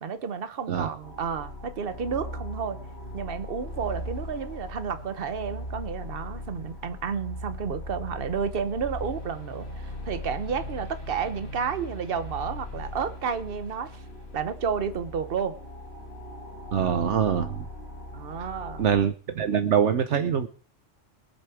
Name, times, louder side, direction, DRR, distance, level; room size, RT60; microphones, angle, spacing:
voice 1, 0.0-2.8 3.1-14.0 14.3-15.6 16.8-17.1 18.1-18.9, right 6 dB, 50° right, 1.2 m, -31 dB
sound 1, 1.0-19.0, left 1 dB, 55° left, 2.5 m, -39 dB
voice 2, 16.7-17.7 18.4-18.5 18.8-20.5, right 8 dB, 70° right, 1.1 m, -24 dB
22.0 x 7.7 x 4.9 m
omnidirectional pair, 1.3 m